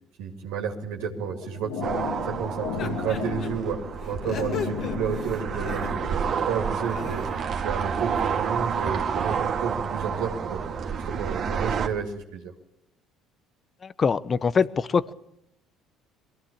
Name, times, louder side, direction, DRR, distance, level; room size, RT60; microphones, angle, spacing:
voice 1, 0.2-1.9 2.3-3.8 4.1-7.2 7.5-10.6 10.9-12.5, right 6 dB, 75° right, 1 dB, 2.5 m, -31 dB
sound 1, 1.2-6.2, left 6 dB, 80° left, 1.9 m, -35 dB
sound 2, 1.8-11.9, right 6 dB, 50° right, 2.1 m, -29 dB
sound 3, 2.8-3.5 4.0-6.2 6.7-7.4, left 6 dB, 55° left, 2.8 m, -37 dB
voice 2, 13.8-15.1, left 5 dB, 35° left, 18 dB, 0.8 m, -23 dB
22.0 x 16.0 x 8.7 m, 0.81 s
hypercardioid pair, 70°, 0 cm